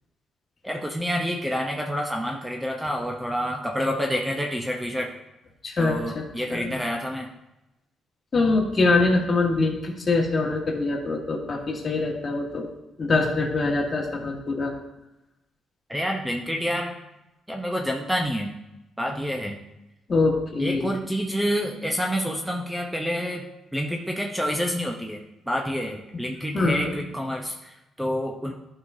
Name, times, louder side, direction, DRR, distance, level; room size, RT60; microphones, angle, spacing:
voice 1, 0.6-5.1 5.8-7.3 15.9-16.9 17.5-18.5 19.0-19.6 20.6-23.4 23.7-25.2 25.5-28.5, equal, 5° right, 2 dB, 0.7 m, -28 dB
voice 2, 5.6-6.2 6.5-6.7 8.3-12.7 13.0-14.7 20.1-20.9 26.5-27.0, left 3 dB, 35° left, 1 dB, 1.6 m, -24 dB
11.5 x 5.6 x 2.7 m, 0.96 s
cardioid pair, 90°, 0 cm